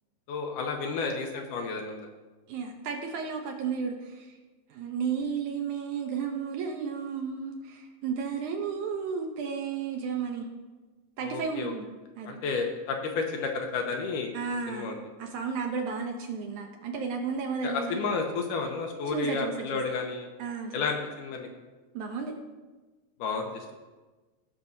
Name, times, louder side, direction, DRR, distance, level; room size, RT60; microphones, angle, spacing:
voice 1, 0.3-2.1 11.2-11.7 12.3-14.3 14.7-15.0 17.6-20.3 20.7-21.5 23.2-23.8, left 4 dB, 75° left, 3 dB, 2.2 m, -31 dB
voice 2, 2.5-4.4 4.7-10.5 11.2-11.9 12.2-12.4 14.3-18.0 19.1-19.5 20.4-20.8 21.9-22.3, right 6 dB, 75° right, 2 dB, 1.9 m, -33 dB
17.5 x 5.9 x 2.7 m, 1.3 s
omnidirectional pair, 4.0 m